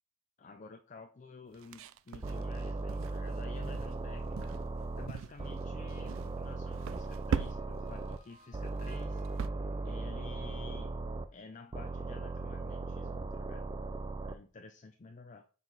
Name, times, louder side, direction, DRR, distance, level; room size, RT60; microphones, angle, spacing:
voice 1, 0.4-4.6 5.0-9.2 9.8-11.0 11.3-13.7 14.2-15.4, left 3 dB, 40° left, 5 dB, 0.5 m, -51 dB
sound 1, 1.5-3.3 3.6-3.9 4.4-4.7 5.1-5.6 5.9-6.3 6.7-7.9 8.2-8.4 8.8-9.5, right 6 dB, 85° right, 0.4 m, -39 dB
sound 2, 2.2-5.1 5.4-8.2 8.5-11.3 11.7-14.3, right 3 dB, 25° right, 0.4 m, -38 dB
sound 3, 7.5-10.8, right 1 dB, 40° right, 2.9 m, -62 dB
6.8 x 4.1 x 4.0 m, 0.36 s
head